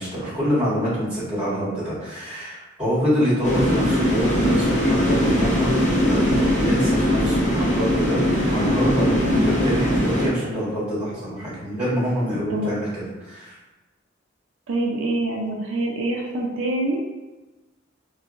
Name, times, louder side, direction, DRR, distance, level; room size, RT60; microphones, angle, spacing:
voice 1, 0.0-8.2 8.5-13.6, equal, 5° right, -12 dB, 1.5 m, -26 dB
voice 2, 3.2-3.5 9.2-9.4 12.5-12.7 14.7-17.1, right 2 dB, 85° right, -1 dB, 0.4 m, -26 dB
sound 1, 3.4-10.3, equal, 40° left, 0.8 m, -20 dB
2.7 x 2.3 x 2.4 m, 1.1 s
head